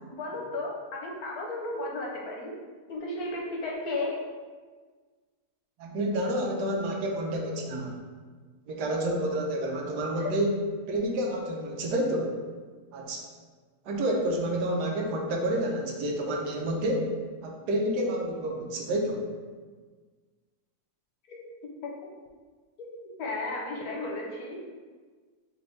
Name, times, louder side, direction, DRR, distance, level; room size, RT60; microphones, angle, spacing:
voice 1, 0.1-2.5 2.9-4.2 10.2-10.3 21.3-21.4 21.8-22.1 22.8-22.9 23.2-24.6, left 2 dB, 70° left, -1 dB, 1.1 m, -34 dB
voice 2, 5.8-8.0 8.7-10.5 10.9-12.4 12.9-13.2 13.9-17.1 17.4-19.2, right 1 dB, 80° right, 1 dB, 1.2 m, -29 dB
3.3 x 3.2 x 3.9 m, 1.5 s
omnidirectional pair, 1.8 m